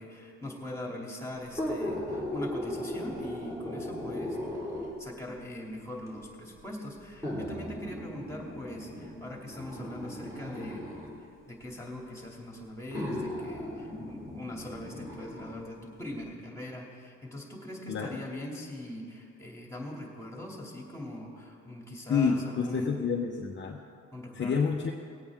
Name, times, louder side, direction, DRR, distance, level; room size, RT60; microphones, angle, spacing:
voice 1, 0.0-4.4 5.0-10.8 11.5-23.0 24.1-24.6, left 1 dB, 10° left, -1 dB, 2.6 m, -41 dB
sound 1, 1.5-5.1 6.1-6.2 7.2-11.1 12.2-12.3 12.9-15.6 16.0-16.1, left 1 dB, 10° right, 3.1 m, -37 dB
voice 2, 22.1-23.8 24.3-24.9, left 5 dB, 40° left, 1 dB, 0.9 m, -28 dB
19.0 x 8.6 x 3.6 m, 2.3 s
cardioid pair, 90°, 30 cm